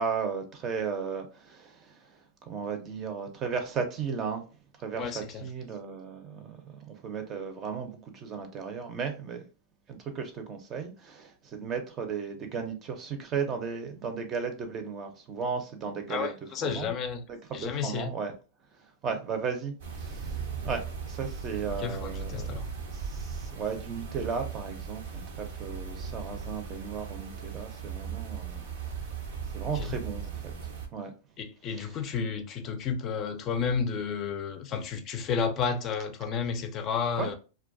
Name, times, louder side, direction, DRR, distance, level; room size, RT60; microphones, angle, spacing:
voice 1, 0.0-4.5 4.8-9.4 9.9-16.3 16.6-16.9 17.3-18.3 18.7-20.8 21.1-22.5 22.9-28.6 28.9-29.1 29.5-30.5 30.9-31.1 31.8-32.0 37.2-37.3, right 6 dB, 35° right, 0.6 m, -35 dB
voice 2, 5.0-5.4 16.1-17.2 17.5-18.1 21.8-22.7 29.7-30.0 31.4-37.3, left 6 dB, 40° left, 0.4 m, -31 dB
sound 1, 19.8-30.9, right 6 dB, 75° right, 0.6 m, -38 dB
2.3 x 2.2 x 2.5 m
hypercardioid pair, 105°, 0 cm